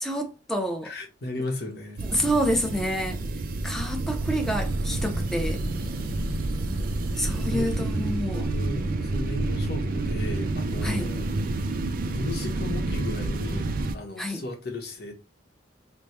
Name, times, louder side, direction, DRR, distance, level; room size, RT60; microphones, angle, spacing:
voice 1, 0.0-0.9 2.1-3.2 3.6-5.6 7.2-8.5 10.8-11.1 14.2-14.4, equal, ahead, 0.6 m, -28 dB
voice 2, 0.8-2.0 7.3-7.9 8.2-11.3 12.1-15.1, left 1 dB, 55° left, 1.1 m, -36 dB
sound 1, 2.0-14.0, right 2 dB, 50° right, 0.4 m, -29 dB
sound 2, 4.1-13.9, right 2 dB, 90° right, 0.7 m, -38 dB
3.5 x 2.1 x 4.3 m
head